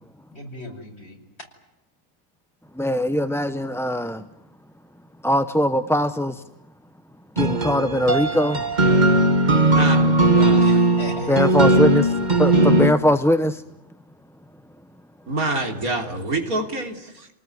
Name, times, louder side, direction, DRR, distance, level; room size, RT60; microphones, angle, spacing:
voice 1, 0.3-1.2 8.8-9.3 10.6-11.6, equal, 45° left, 3 dB, 5.8 m, -37 dB
voice 2, 2.8-4.2 5.2-6.4 7.4-8.6 11.3-12.1 12.4-13.6, equal, ahead, 9 dB, 0.6 m, -21 dB
sound 1, 7.4-12.9, right 2 dB, 30° right, 1.8 m, -18 dB
voice 3, 9.6-10.9 15.3-17.3, right 2 dB, 75° right, 4 dB, 3.8 m, -27 dB
30.0 x 19.5 x 9.3 m, 0.89 s
omnidirectional pair, 1.5 m